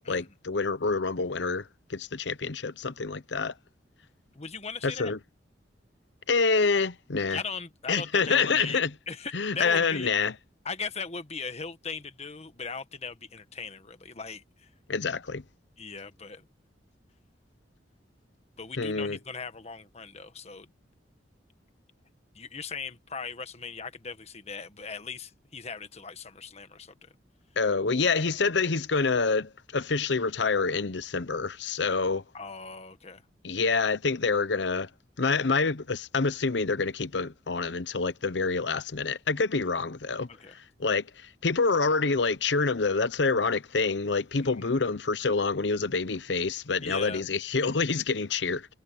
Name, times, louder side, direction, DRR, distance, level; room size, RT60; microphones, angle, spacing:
voice 1, 0.1-3.5 4.8-5.2 6.3-7.4 7.9-8.9 9.3-10.3 14.9-15.4 18.8-19.2 27.6-32.2 33.4-34.9 35.2-40.3 40.5-48.7, left 4 dB, 70° left, 0.9 m, -27 dB
voice 2, 4.3-5.1 7.3-8.8 9.1-10.1 10.6-14.7 15.8-16.5 18.6-20.7 22.3-27.1 32.3-33.2 40.3-40.6 44.4-44.7 46.8-47.2, left 5 dB, 35° left, 1.5 m, -39 dB
head